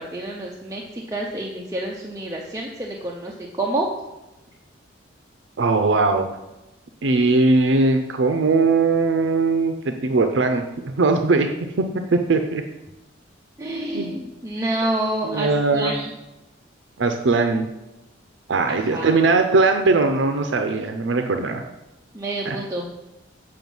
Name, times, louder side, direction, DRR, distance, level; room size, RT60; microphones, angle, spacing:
voice 1, 0.0-3.9 13.6-16.1 18.7-19.2 22.1-22.9, right 1 dB, 15° right, -2 dB, 0.6 m, -28 dB
voice 2, 5.6-6.3 7.0-11.5 11.8-11.9 12.1-12.6 13.9-14.2 15.2-15.9 17.0-17.7 18.5-21.6 22.5-22.6, right 3 dB, 70° right, 6 dB, 0.5 m, -20 dB
7.7 x 5.0 x 5.4 m, 0.97 s
head